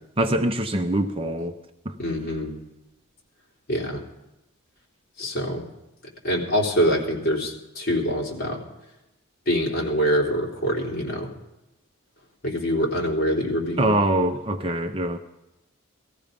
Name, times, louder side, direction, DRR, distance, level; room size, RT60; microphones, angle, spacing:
voice 1, 0.2-1.5 1.9-2.0 13.8-15.2, right 1 dB, 25° right, 6 dB, 0.6 m, -23 dB
voice 2, 2.0-2.5 3.7-4.0 5.2-5.6 6.2-8.6 9.5-11.3 12.4-13.9 14.2-14.3, equal, 45° left, -2 dB, 3.6 m, -24 dB
18.0 x 14.5 x 5.3 m, 0.95 s
head